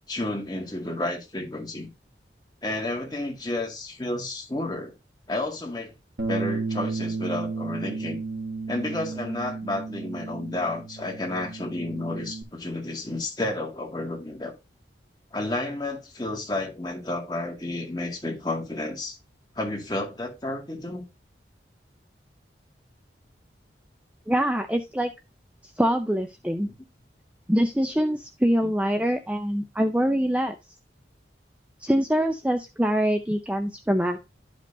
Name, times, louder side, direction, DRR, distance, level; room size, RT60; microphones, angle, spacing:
voice 1, 0.1-1.9 2.6-5.0 5.3-5.9 6.3-8.2 8.7-14.6 15.3-19.2 19.6-21.0, left 2 dB, 25° left, 2.1 m, -31 dB
Bass guitar, 6.2-12.4, right 3 dB, 60° right, 2.1 m, -33 dB
voice 2, 24.3-25.1 25.8-26.7 27.5-30.6 31.8-34.2, equal, 5° right, 0.5 m, -24 dB
12.0 x 5.3 x 2.7 m
head